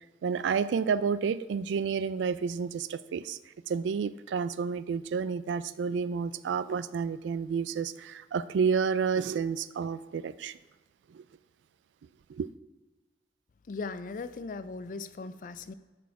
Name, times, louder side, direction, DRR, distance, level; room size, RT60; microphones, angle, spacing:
voice 1, 0.2-3.4 3.7-10.5 11.1-11.2 12.3-12.5, right 6 dB, 85° right, 0.3 m, -30 dB
voice 2, 13.7-15.7, left 4 dB, 45° left, 0.4 m, -38 dB
12.0 x 4.3 x 4.7 m
head